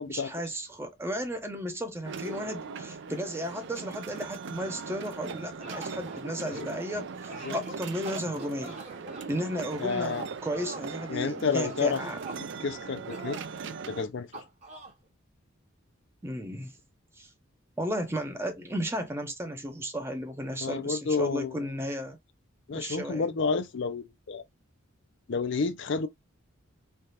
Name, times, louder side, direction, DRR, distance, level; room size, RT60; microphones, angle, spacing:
voice 1, 0.1-8.8 9.3-12.2 16.2-16.7 17.2-17.3 17.8-22.2 22.7-23.3, equal, 10° right, 0.6 m, -34 dB
sound 1, 2.0-14.0, right 5 dB, 55° right, 0.4 m, -40 dB
sound 2, 5.3-6.9 7.3-9.3 10.0-10.9 11.5-12.4 13.1-13.5 14.3-14.9, right 3 dB, 35° right, 1.0 m, -43 dB
voice 2, 9.8-10.2 11.1-12.0 12.6-13.4 13.7-14.3 20.6-21.7 22.7-24.4 25.3-26.1, left 5 dB, 55° left, 0.4 m, -30 dB
3.3 x 2.4 x 2.8 m
head